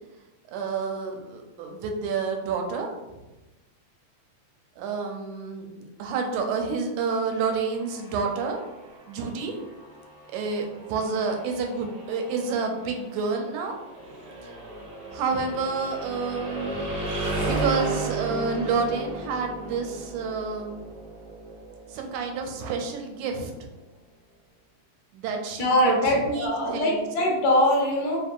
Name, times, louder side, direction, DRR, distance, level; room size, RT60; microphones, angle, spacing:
voice 1, 0.5-2.9 4.8-8.6 9.1-9.5 10.3-13.8 14.4-14.5 15.1-16.9 17.5-20.8 21.9-23.7 25.1-26.0 26.3-27.1, right 5 dB, 85° right, 3 dB, 2.0 m, -29 dB
sound 1, 7.3-23.1, right 2 dB, 70° right, 1.1 m, -35 dB
voice 2, 25.6-28.2, left 1 dB, 75° left, -1 dB, 2.0 m, -22 dB
4.7 x 3.5 x 2.4 m, 1.1 s
omnidirectional pair, 3.4 m